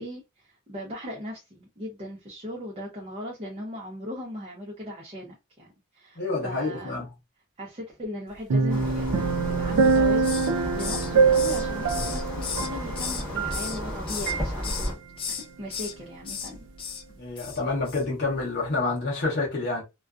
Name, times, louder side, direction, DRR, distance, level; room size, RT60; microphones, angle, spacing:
voice 1, 0.0-7.0 7.6-10.4 10.8-15.0 15.3-16.7, left 1 dB, 25° right, 0.5 m, -38 dB
voice 2, 6.2-7.1 17.1-19.8, left 3 dB, 45° left, 0.7 m, -28 dB
sound 1, 8.5-13.9 14.3-14.4, right 5 dB, 80° right, 0.4 m, -24 dB
sound 2, 8.7-14.9, equal, 5° left, 1.0 m, -33 dB
Hiss, 9.8-10.5 10.8-13.2 13.5-14.3 14.6-14.9 15.2-15.9 16.2-16.5 16.8-17.0 17.4-17.6 17.9-18.0, left 7 dB, 25° left, 0.3 m, -35 dB
2.4 x 2.2 x 2.3 m
head